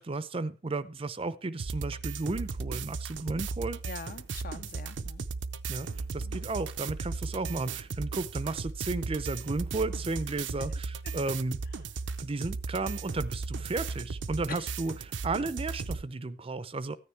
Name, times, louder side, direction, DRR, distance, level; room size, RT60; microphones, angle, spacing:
voice 1, 0.0-3.8 5.7-11.6 12.2-17.0, right 3 dB, 30° right, 16 dB, 0.5 m, -34 dB
sound 1, 1.6-16.0, right 4 dB, 80° right, 0.6 m, -36 dB
voice 2, 3.8-5.3 6.2-6.3 14.5-14.7, left 4 dB, 50° left, 12 dB, 0.7 m, -44 dB
14.5 x 9.7 x 3.3 m, 0.32 s
head